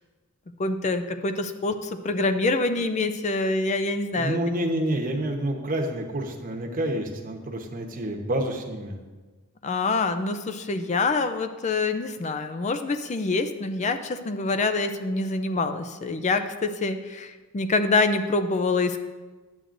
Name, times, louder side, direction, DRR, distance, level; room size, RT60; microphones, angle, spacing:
voice 1, 0.6-4.4 9.6-19.0, left 3 dB, 35° left, 9 dB, 0.4 m, -26 dB
voice 2, 4.2-9.0, right 1 dB, 40° right, 1 dB, 1.0 m, -28 dB
10.5 x 7.8 x 2.6 m, 1.3 s
head